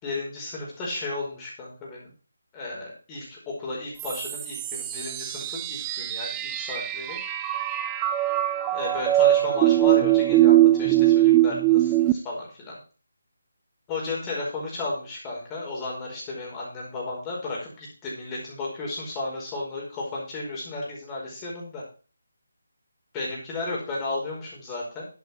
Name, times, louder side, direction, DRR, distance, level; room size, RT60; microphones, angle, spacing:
voice 1, 0.0-2.1 2.5-7.2 8.7-12.8 13.9-21.8 23.1-25.1, left 2 dB, 15° left, -4 dB, 4.9 m, -34 dB
sound 1, 4.0-12.1, right 15 dB, 15° right, 0.6 m, -22 dB
11.0 x 8.4 x 4.5 m, 0.36 s
figure-of-eight pair, 160°, 0 cm